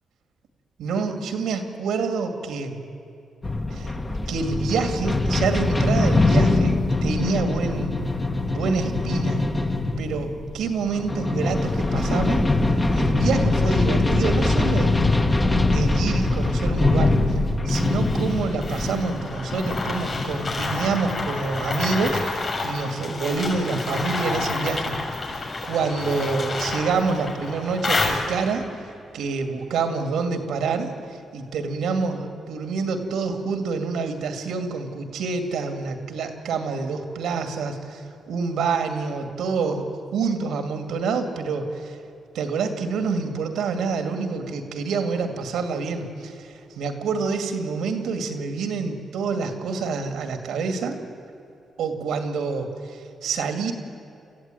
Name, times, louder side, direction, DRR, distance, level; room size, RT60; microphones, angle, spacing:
voice 1, 0.8-2.9 3.7-3.9 4.3-8.0 8.5-9.4 10.0-12.4 12.9-14.9 15.7-17.2 17.7-25.4 25.7-28.7 29.1-30.9 31.3-39.9 40.1-42.0 42.3-51.0 51.8-53.7, right 4 dB, 85° right, 6 dB, 2.3 m, -27 dB
sound 1, 3.4-20.9, left 2 dB, 25° left, 1.9 m, -23 dB
sound 2, 17.7-28.7, left 3 dB, 45° left, 6.8 m, -29 dB
27.5 x 14.5 x 9.2 m, 2.6 s
cardioid pair, 75°, 0 cm